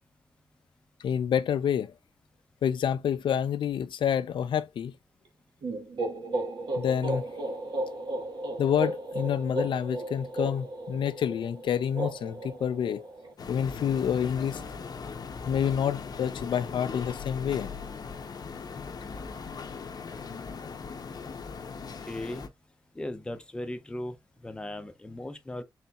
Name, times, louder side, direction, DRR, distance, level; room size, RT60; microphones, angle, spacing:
voice 1, 1.0-1.9 2.6-4.9 6.8-7.2 8.6-13.0 13.5-14.6 15.5-17.7, left 8 dB, 85° left, 0.4 m, -28 dB
sound 1, 5.6-13.3, right 2 dB, 70° right, 1.1 m, -34 dB
sound 2, 13.4-22.5, left 5 dB, 55° left, 0.7 m, -39 dB
voice 2, 22.0-22.4 22.9-25.6, left 1 dB, 10° left, 0.6 m, -37 dB
4.2 x 3.9 x 2.3 m
wide cardioid pair, 165°, 8 cm